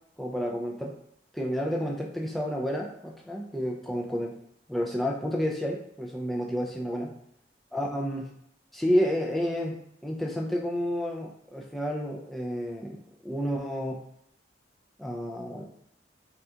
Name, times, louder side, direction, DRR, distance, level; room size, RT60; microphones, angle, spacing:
voice 1, 0.2-1.0 1.3-4.3 4.7-7.1 7.7-8.3 8.7-9.8 10.0-14.0 15.0-15.6, equal, ahead, -2 dB, 0.3 m, -30 dB
3.3 x 2.4 x 2.7 m, 0.76 s
head